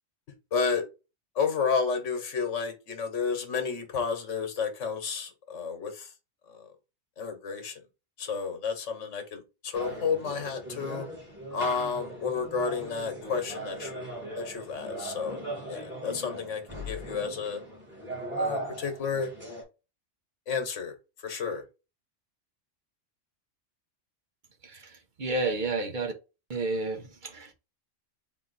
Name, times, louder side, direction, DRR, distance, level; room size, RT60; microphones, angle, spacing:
voice 1, 0.5-0.8 1.3-6.1 6.5-6.7 7.2-7.8 8.2-11.1 11.5-14.1 14.4-15.4 15.7-17.6 18.4-19.3 20.5-20.9 21.2-21.6, left 5 dB, 85° left, 1.3 m, -31 dB
sound 1, 9.7-19.6, right 2 dB, 10° right, 1.8 m, -38 dB
voice 2, 24.6-26.1 26.5-27.5, right 3 dB, 45° right, 0.9 m, -31 dB
3.6 x 2.9 x 3.9 m
omnidirectional pair, 1.2 m